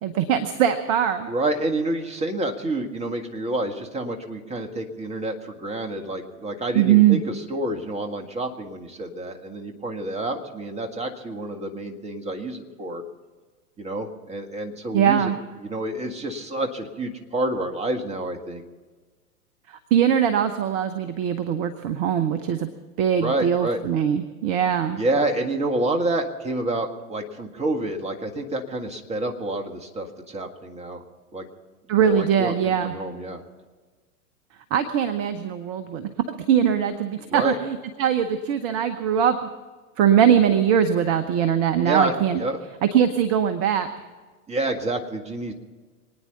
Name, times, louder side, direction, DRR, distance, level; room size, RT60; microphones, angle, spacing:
voice 1, 0.0-1.3 6.7-7.2 14.9-15.4 19.7-22.7 23.0-25.0 31.9-32.9 34.7-36.1 36.5-39.4 40.0-42.4 42.9-43.9, right 9 dB, 30° right, 10 dB, 0.9 m, -21 dB
voice 2, 1.3-13.0 13.8-15.3 15.6-18.6 23.2-23.8 25.0-31.0 31.3-31.5 32.0-33.4 37.3-37.6 41.8-42.6 44.5-45.5, right 2 dB, 15° right, 4 dB, 1.8 m, -28 dB
26.0 x 9.6 x 5.7 m, 1.4 s
figure-of-eight pair, 100°, 45 cm